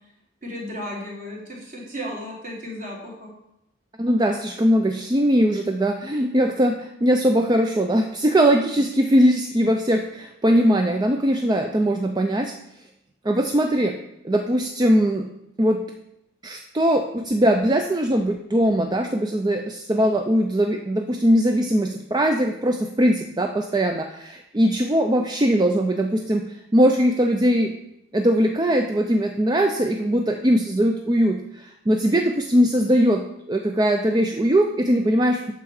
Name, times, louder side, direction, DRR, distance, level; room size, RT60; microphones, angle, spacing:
voice 1, 0.4-3.3 8.7-8.8, equal, 45° right, -3 dB, 3.0 m, -34 dB
voice 2, 4.0-12.5 13.2-13.9 14.2-15.3 15.6-15.8 16.4-27.7 28.1-35.5, equal, 20° right, 5 dB, 0.4 m, -20 dB
9.1 x 7.1 x 4.9 m, 0.84 s
head